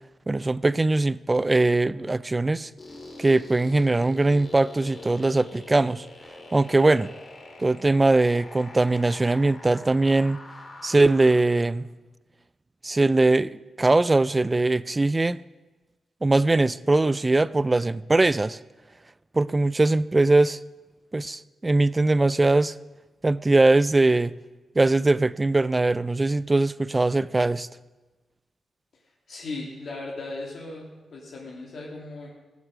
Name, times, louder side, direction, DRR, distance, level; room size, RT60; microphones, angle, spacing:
voice 1, 0.3-2.7 3.2-6.1 6.5-7.1 7.6-10.4 10.8-11.9 12.8-15.4 16.2-18.6 19.3-20.6 21.1-22.7 23.2-24.3 24.8-27.7, right 2 dB, 20° right, 0.4 m, -21 dB
sound 1, 2.8-11.4, left 2 dB, 40° left, 2.6 m, -44 dB
voice 2, 29.3-32.3, left 2 dB, 60° left, 2.6 m, -37 dB
17.0 x 8.2 x 7.6 m
wide cardioid pair, 110°, 0 cm